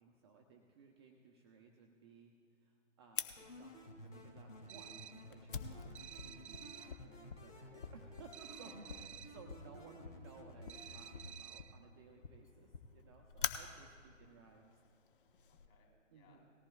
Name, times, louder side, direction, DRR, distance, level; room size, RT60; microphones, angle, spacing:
voice 1, 0.0-2.3 2.6-8.9 9.3-14.7 16.1-16.5, right 5 dB, 20° right, 2 dB, 0.7 m, -60 dB
Fire, 3.2-15.7, left 7 dB, 45° left, 0.9 m, -48 dB
sound 1, 3.4-11.3, left 1 dB, 75° left, 2.9 m, -54 dB
sound 2, 4.7-5.3 6.0-7.0 8.3-9.4 10.7-11.8, right 10 dB, 65° right, 0.6 m, -53 dB
voice 2, 8.5-9.2 14.0-14.4 15.5-16.4, left 4 dB, 25° left, 1 dB, 3.1 m, -67 dB
19.0 x 14.0 x 2.4 m, 2.2 s
figure-of-eight pair, 135°, 38 cm